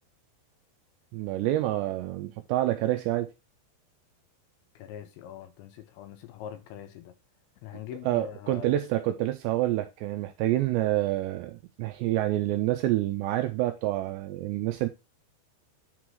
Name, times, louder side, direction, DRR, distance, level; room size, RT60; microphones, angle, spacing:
voice 1, 1.1-3.3 8.1-14.9, right 15 dB, 85° right, 2.5 m, -27 dB
voice 2, 4.8-7.1 7.6-8.8, left 10 dB, 80° left, 2.9 m, -42 dB
9.7 x 4.8 x 3.6 m
omnidirectional pair, 5.5 m